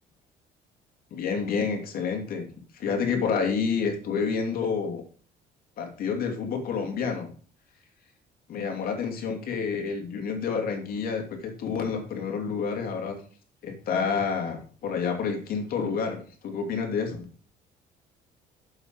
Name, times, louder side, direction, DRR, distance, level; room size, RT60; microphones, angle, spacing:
voice 1, 1.1-2.5 2.7-5.0 5.8-7.3 8.5-13.2 13.6-17.3, left 5 dB, 60° left, 3 dB, 2.8 m, -29 dB
8.0 x 7.3 x 4.6 m, 0.42 s
cardioid pair, 110°, 17 cm